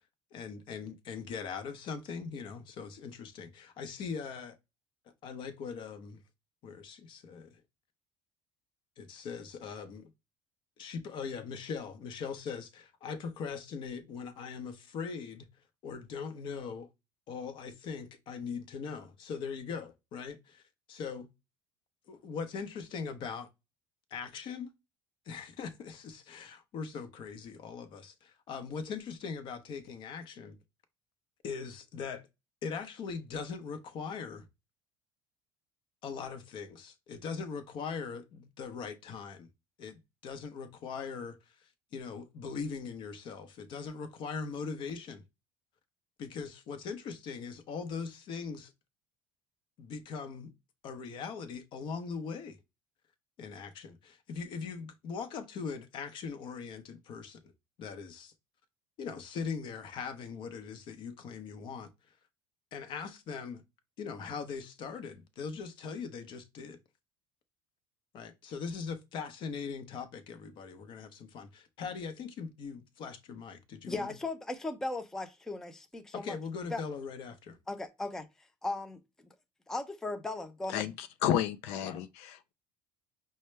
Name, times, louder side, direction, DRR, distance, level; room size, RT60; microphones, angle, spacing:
voice 1, 0.3-4.6 5.2-6.2 6.6-7.6 9.0-10.1 10.8-15.5 15.8-16.9 17.3-20.6 20.9-21.3 22.1-23.5 24.1-24.7 25.3-30.6 31.4-32.3 32.6-34.4 36.0-39.5 39.8-45.2 46.2-48.7 49.8-50.5 50.8-52.6 53.4-57.5 57.8-58.3 59.0-61.9 62.7-63.6 64.0-66.8 68.1-74.2 76.1-77.6 81.8-82.0, left 5 dB, 50° left, 0.8 m, -40 dB
voice 2, 73.9-76.4 76.7-76.8 77.7-78.3 78.6-79.0 79.7-80.8, left 2 dB, 5° left, 0.4 m, -37 dB
voice 3, 80.7-82.5, left 10 dB, 75° left, 0.5 m, -32 dB
5.5 x 2.1 x 3.2 m
cardioid pair, 150°, 11 cm